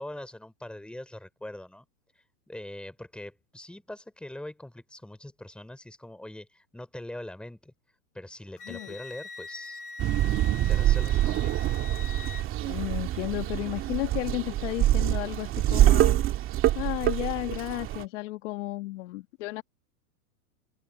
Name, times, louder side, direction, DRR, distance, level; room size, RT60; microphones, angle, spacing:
voice 1, 0.0-1.9 2.5-7.7 8.1-9.8 10.2-11.5, left 1 dB, ahead, 3.8 m, -42 dB
Wind instrument woodwind instrument, 8.6-12.5, left 4 dB, 70° left, 2.7 m, -43 dB
sound 1, 10.0-18.0, right 13 dB, 25° right, 2.2 m, -25 dB
voice 2, 12.6-16.2 16.7-19.6, left 20 dB, 50° left, 1.7 m, -33 dB
hypercardioid pair, 145°, 47 cm